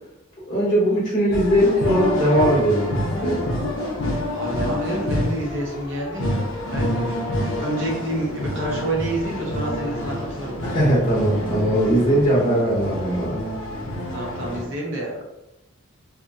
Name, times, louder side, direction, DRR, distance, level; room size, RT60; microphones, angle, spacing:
voice 1, 0.5-3.4 10.6-13.4, equal, 35° left, -8 dB, 0.8 m, -20 dB
sound 1, 1.3-14.7, left 1 dB, 80° left, 0.6 m, -27 dB
voice 2, 4.3-6.3 6.6-10.6 14.1-15.2, right 1 dB, 60° right, -2 dB, 0.7 m, -29 dB
2.7 x 2.0 x 2.6 m, 0.93 s
head